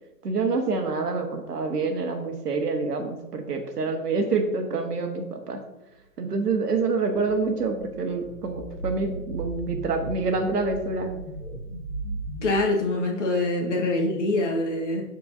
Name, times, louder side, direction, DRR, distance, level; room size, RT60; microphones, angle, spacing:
voice 1, 0.2-5.6 6.2-11.1, right 4 dB, 75° right, 4 dB, 1.5 m, -27 dB
sound 1, 6.8-12.5, right 2 dB, 25° right, 1.5 m, -36 dB
voice 2, 12.4-15.0, left 2 dB, 50° left, -1 dB, 1.6 m, -24 dB
12.0 x 4.6 x 2.7 m, 0.99 s
hypercardioid pair, 175°, 47 cm